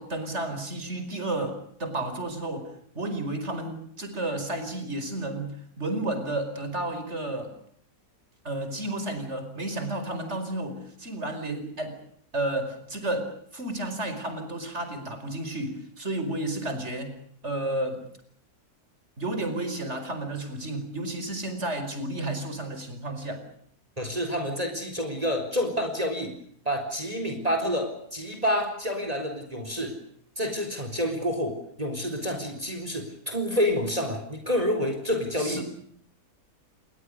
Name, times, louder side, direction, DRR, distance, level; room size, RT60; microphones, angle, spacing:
voice 1, 0.0-7.5 8.4-12.0 12.3-17.2 17.4-18.0 19.2-23.5 35.4-35.6, right 1 dB, 45° right, 9 dB, 5.3 m, -32 dB
voice 2, 24.0-26.3 26.7-30.0 30.4-35.6, equal, 25° right, 6 dB, 4.0 m, -28 dB
29.0 x 21.0 x 6.5 m, 0.63 s
omnidirectional pair, 1.6 m